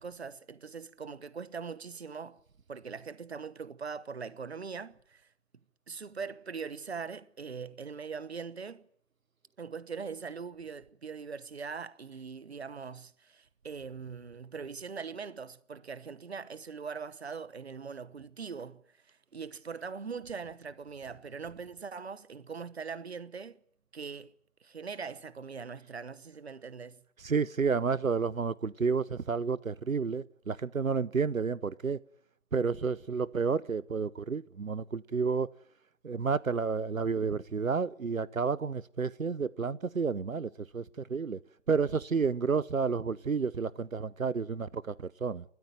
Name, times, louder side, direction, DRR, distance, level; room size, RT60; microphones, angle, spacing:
voice 1, 0.0-2.4 2.7-5.3 5.9-8.9 9.6-23.6 23.9-24.3 24.6-27.0, right 5 dB, 50° right, 1.2 m, -41 dB
voice 2, 27.2-32.0 32.5-35.5 36.0-41.4 41.7-45.4, right 5 dB, 85° right, 0.9 m, -30 dB
29.5 x 14.0 x 9.3 m
figure-of-eight pair, 155°, 40 cm